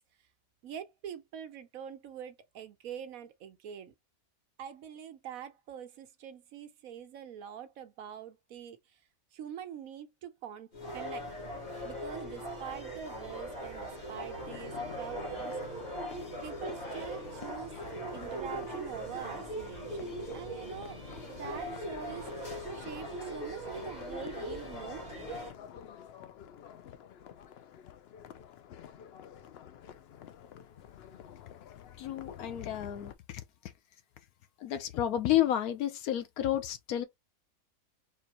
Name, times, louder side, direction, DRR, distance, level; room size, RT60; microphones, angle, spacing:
voice 1, 0.6-3.9 4.6-9.0 9.3-11.3 11.8-15.8 16.4-17.8 18.1-22.5 22.7-25.4, right 9 dB, 75° right, 1.2 m, -45 dB
sound 1, 10.7-25.5, right 1 dB, 45° left, 1.8 m, -40 dB
sound 2, 14.4-33.1, left 9 dB, 65° left, 0.6 m, -50 dB
voice 2, 32.0-33.4 34.6-37.1, left 12 dB, 85° left, 1.2 m, -31 dB
4.4 x 3.1 x 2.9 m
omnidirectional pair, 1.5 m